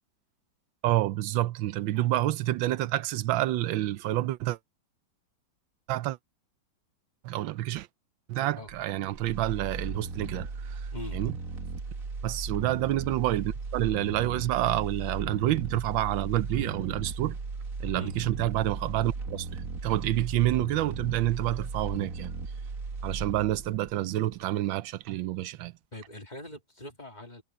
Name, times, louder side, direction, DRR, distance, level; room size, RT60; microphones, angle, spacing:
voice 1, 0.8-4.6 5.9-6.2 7.2-7.9 8.3-11.3 12.2-17.4 17.8-22.3 23.0-25.7, right 14 dB, 85° right, 1.4 m, -28 dB
sound 1, 8.7-24.8 25.1-25.2, right 3 dB, 45° right, 2.1 m, -37 dB
voice 2, 25.9-27.4, left 2 dB, 25° left, 2.0 m, -42 dB
omnidirectional pair, 2.1 m